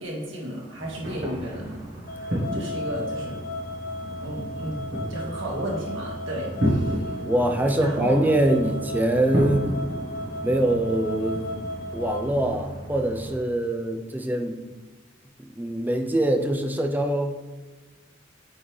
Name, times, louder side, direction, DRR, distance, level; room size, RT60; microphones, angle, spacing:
voice 1, 0.0-3.4 4.0-4.8 5.1-7.1 7.8-8.2, right 1 dB, 80° right, -3 dB, 1.9 m, -34 dB
sound 1, 0.7-13.3, equal, 50° right, 1.7 m, -32 dB
sound 2, 2.1-12.3, left 1 dB, 45° left, 0.6 m, -35 dB
voice 2, 7.2-9.7 10.4-11.4 11.9-14.6 15.4-17.4, right 1 dB, 10° right, 4 dB, 0.6 m, -24 dB
8.0 x 3.9 x 3.3 m, 1.3 s
head